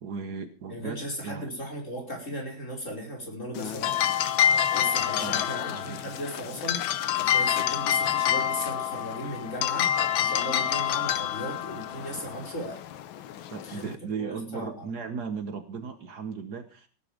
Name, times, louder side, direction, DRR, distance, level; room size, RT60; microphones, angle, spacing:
voice 1, 0.0-1.5 5.1-6.1 13.5-16.9, right 5 dB, 60° right, 9 dB, 1.6 m, -37 dB
voice 2, 0.7-4.0 4.7-6.9 7.1-12.8 13.6-14.9, equal, 40° left, 0 dB, 5.7 m, -37 dB
sound 1, 3.6-14.0, left 10 dB, 85° left, 1.6 m, -27 dB
17.5 x 10.0 x 5.0 m, 0.37 s
omnidirectional pair, 2.1 m